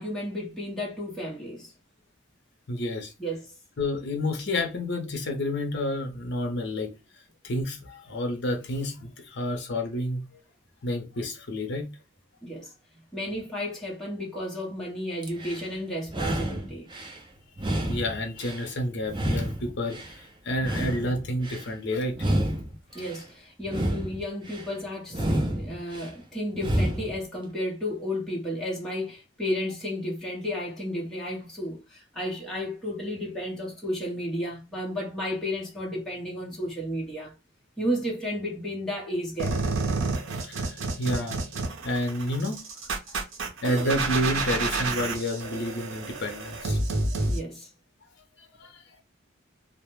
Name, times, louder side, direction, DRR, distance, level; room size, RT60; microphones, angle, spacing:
voice 1, 0.0-1.7 3.2-3.5 12.4-12.7 13.1-16.9 22.9-37.3 37.8-39.6 47.3-47.7, equal, ahead, 0.8 m, -33 dB
voice 2, 2.7-3.1 3.8-6.9 7.4-10.2 10.8-11.9 17.9-22.3 40.1-41.4 41.8-42.6 43.6-46.8 47.1-47.2 48.6-49.0, left 1 dB, 60° left, 0.6 m, -30 dB
sound 1, 15.2-15.7 16.1-17.2 17.6-18.7 19.1-20.2 20.6-21.7 22.1-23.2 23.6-24.7 25.1-26.1 26.5-27.2, right 1 dB, 25° right, 0.4 m, -29 dB
sound 2, 39.4-47.4, right 3 dB, 80° right, 0.6 m, -29 dB
2.1 x 2.0 x 3.0 m
head